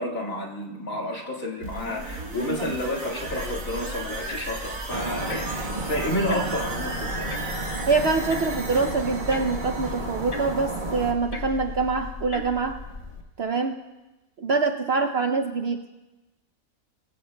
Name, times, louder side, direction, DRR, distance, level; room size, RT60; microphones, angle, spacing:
voice 1, 0.0-7.3, left 1 dB, 60° left, -1 dB, 2.4 m, -30 dB
sound 1, 1.6-11.3 11.7-11.8, right 3 dB, 80° right, 2.7 m, -37 dB
sound 2, 3.3-13.2, left 3 dB, 35° left, 1.4 m, -37 dB
sound 3, 4.9-11.1, right 2 dB, 35° right, 1.4 m, -33 dB
voice 2, 7.9-12.8 13.4-13.8 14.4-15.8, right 4 dB, 55° right, 5 dB, 0.7 m, -25 dB
22.5 x 16.0 x 2.2 m, 1.1 s
omnidirectional pair, 1.6 m